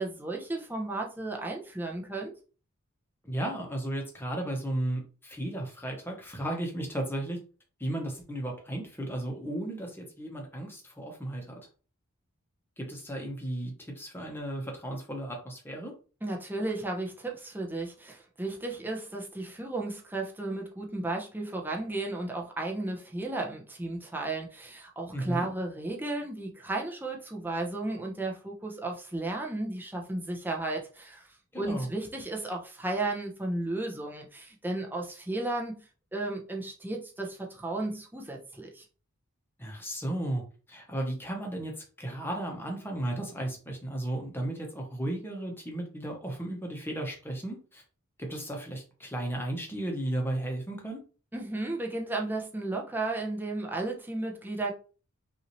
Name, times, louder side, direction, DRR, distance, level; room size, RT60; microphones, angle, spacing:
voice 1, 0.0-2.3 16.2-31.3 31.6-35.8 36.1-38.9 51.3-54.7, right 2 dB, 10° right, 0.8 m, -34 dB
voice 2, 3.2-7.4 7.8-11.6 12.8-15.9 25.1-25.5 31.5-31.9 39.6-47.8 48.2-51.0, right 1 dB, 10° left, 1.1 m, -34 dB
5.5 x 2.8 x 3.1 m
head